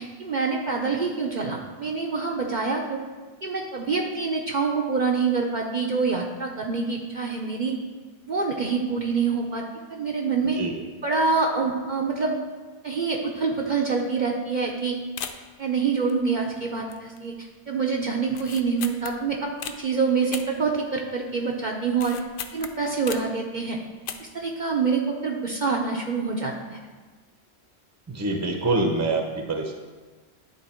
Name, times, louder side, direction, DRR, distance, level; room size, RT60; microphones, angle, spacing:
voice 1, 0.0-3.0 3.4-7.7 8.3-9.6 9.9-10.6 11.0-12.4 12.8-15.0 15.6-17.3 17.7-22.2 22.5-23.8 24.3-26.8, right 4 dB, 50° right, 0 dB, 0.7 m, -26 dB
sound 1, 14.7-14.8 15.2-15.6 16.1-16.6 16.9-17.3 17.6-17.7 18.3-19.8 20.3-21.2 21.5-23.4 23.9-24.5 24.7-24.8, left 7 dB, 60° left, 0.7 m, -37 dB
voice 2, 28.1-29.7, right 2 dB, 15° right, 3 dB, 0.7 m, -25 dB
11.0 x 3.8 x 4.4 m, 1.4 s
omnidirectional pair, 1.1 m